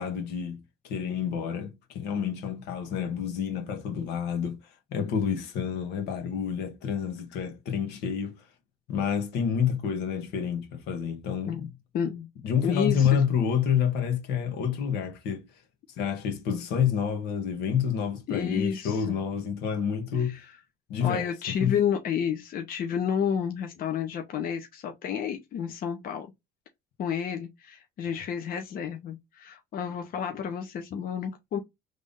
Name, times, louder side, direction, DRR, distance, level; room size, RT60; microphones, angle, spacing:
voice 1, 0.0-4.6 4.9-8.5 8.9-11.7 12.4-15.5 16.0-20.4 20.9-21.8, left 7 dB, 85° left, 1.2 m, -28 dB
voice 2, 11.9-12.3 12.6-13.2 18.3-19.2 20.2-20.4 21.0-26.3 27.0-31.6, left 8 dB, 60° left, 0.8 m, -30 dB
3.5 x 2.6 x 3.5 m
cardioid pair, 110°, 17 cm